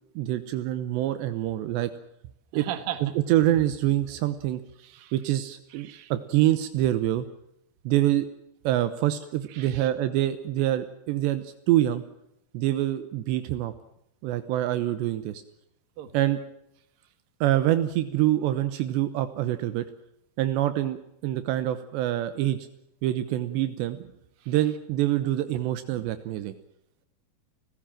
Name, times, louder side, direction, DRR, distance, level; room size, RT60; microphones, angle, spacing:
voice 1, 0.2-1.9 2.5-2.7 3.0-4.6 5.1-7.3 7.8-8.3 8.6-12.0 12.5-13.7 14.2-15.4 16.1-16.4 17.4-19.9 20.4-21.0 21.2-22.7 23.0-24.0 24.5-26.5, right 13 dB, 80° right, 11 dB, 3.1 m, -25 dB
voice 2, 2.5-3.0 4.8-5.1 5.7-6.1 9.5-9.9 16.0-16.1 24.4-24.5, right 11 dB, 60° right, 10 dB, 3.2 m, -37 dB
30.0 x 15.5 x 7.6 m, 0.80 s
omnidirectional pair, 5.0 m